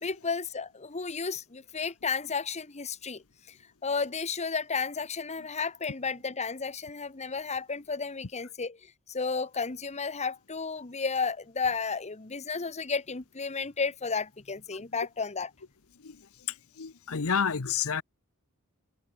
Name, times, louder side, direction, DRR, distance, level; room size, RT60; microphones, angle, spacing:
voice 1, 0.0-3.6 3.8-15.5, left 5 dB, 30° left, 1.2 m, -33 dB
voice 2, 16.5-18.0, left 7 dB, 65° left, 0.9 m, -30 dB
head